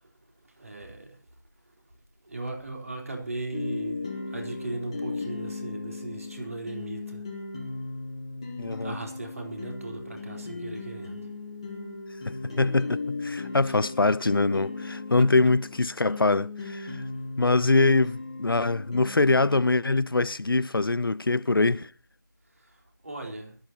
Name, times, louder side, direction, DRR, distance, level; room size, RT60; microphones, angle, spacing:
voice 1, 0.4-1.2 2.2-7.2 8.6-11.3 13.7-13.8 15.2-15.3 17.9-18.0 22.5-23.6, right 2 dB, 40° right, 4.0 m, -38 dB
sound 1, 3.5-19.6, left 3 dB, 15° left, 1.6 m, -37 dB
voice 2, 8.6-8.9 12.3-17.0 17.4-21.9, left 3 dB, 85° left, 0.7 m, -24 dB
24.0 x 12.5 x 2.9 m
figure-of-eight pair, 175°, 11 cm